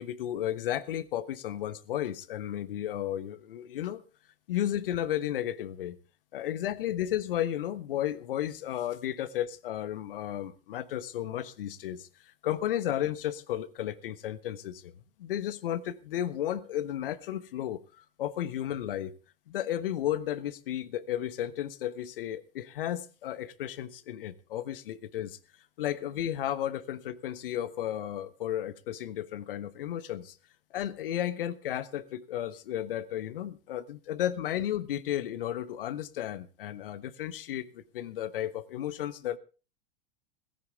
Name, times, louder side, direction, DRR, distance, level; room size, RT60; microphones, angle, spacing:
voice 1, 0.0-4.0 4.5-6.0 6.3-12.1 12.4-14.9 15.2-19.1 19.5-25.4 25.8-30.4 30.7-39.4, left 11 dB, 65° left, 1.4 m, -33 dB
18.0 x 16.0 x 3.4 m
figure-of-eight pair, 90°, 30 cm